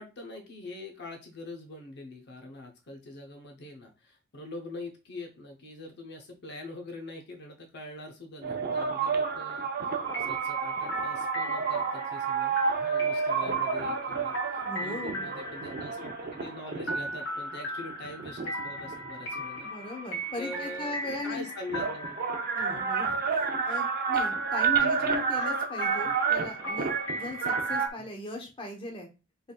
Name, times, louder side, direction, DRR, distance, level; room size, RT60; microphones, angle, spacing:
voice 1, 0.0-16.1 16.4-19.7 20.4-22.2 22.7-22.8 24.8-25.2 26.0-26.1 27.7-28.1, left 2 dB, 55° left, 3 dB, 0.7 m, -44 dB
sound 1, 8.4-17.2 17.9-19.6 20.8-20.9 21.1-27.9, right 5 dB, 45° right, 0.6 m, -30 dB
sound 2, 10.1-27.9, right 1 dB, 85° left, 1.9 m, -37 dB
voice 2, 14.6-15.3 19.6-21.5 22.5-29.1, left 2 dB, 25° left, 2 dB, 0.8 m, -38 dB
3.8 x 3.4 x 2.2 m, 0.30 s
head